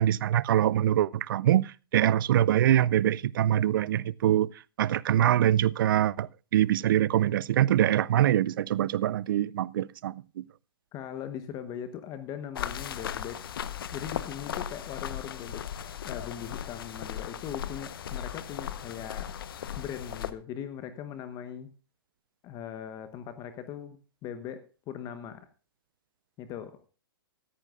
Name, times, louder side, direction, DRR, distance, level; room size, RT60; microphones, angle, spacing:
voice 1, 0.0-4.5 4.8-10.5, right 12 dB, 60° right, 0.5 m, -24 dB
voice 2, 10.9-13.4 13.9-15.6 16.0-19.3 19.8-21.7 22.4-25.5 26.4-26.8, left 9 dB, 30° left, 1.2 m, -40 dB
sound 1, 12.6-20.3, left 9 dB, 65° left, 1.1 m, -37 dB
16.0 x 14.0 x 2.5 m
hypercardioid pair, 125°, 13 cm